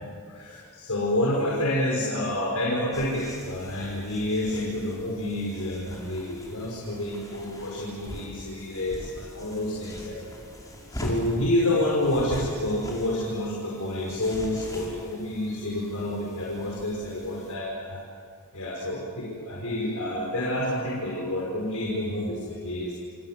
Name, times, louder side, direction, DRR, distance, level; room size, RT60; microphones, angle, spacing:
voice 1, 0.0-10.3 10.9-18.0 18.5-22.9, left 1 dB, 80° left, -3 dB, 5.5 m, -29 dB
sound 1, 2.9-17.5, equal, 15° left, 5.2 m, -42 dB
27.5 x 27.0 x 7.7 m, 2.1 s
head